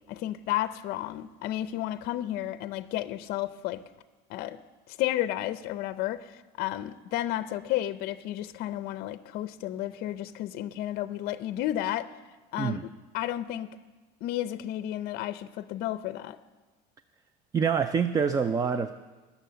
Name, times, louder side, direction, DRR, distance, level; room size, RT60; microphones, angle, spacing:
voice 1, 0.1-3.8 4.3-4.6 4.9-12.1 12.5-12.8 13.1-13.7 14.2-16.4, left 13 dB, 55° left, 13 dB, 0.5 m, -32 dB
voice 2, 17.5-18.9, right 6 dB, 20° right, 11 dB, 0.4 m, -26 dB
20.5 x 7.1 x 6.8 m, 1.2 s
cardioid pair, 150°, 20 cm